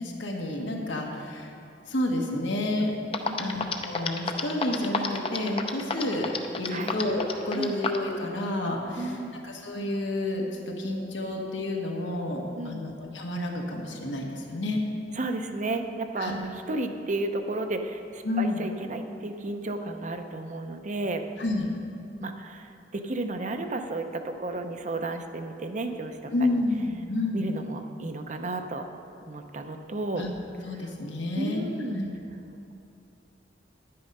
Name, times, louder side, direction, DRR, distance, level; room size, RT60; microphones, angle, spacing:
voice 1, 0.0-1.5 1.9-2.9 3.4-9.2 9.4-14.8 16.2-16.3 18.2-18.6 21.4-21.7 26.3-27.5 30.2-30.3 30.6-31.6 31.9-32.1, left 1 dB, 85° left, 0 dB, 1.6 m, -30 dB
sound 1, 2.8-2.9 3.1-8.1, left 4 dB, 30° left, 0.6 m, -29 dB
voice 2, 3.3-3.6 6.7-7.0 7.5-7.8 9.0-9.4 12.5-12.9 15.1-21.2 22.2-26.5 27.3-28.9 29.3-30.2 30.7-30.9 31.4-32.0, right 2 dB, 40° right, 6 dB, 0.7 m, -33 dB
10.5 x 9.4 x 5.4 m, 2.7 s
head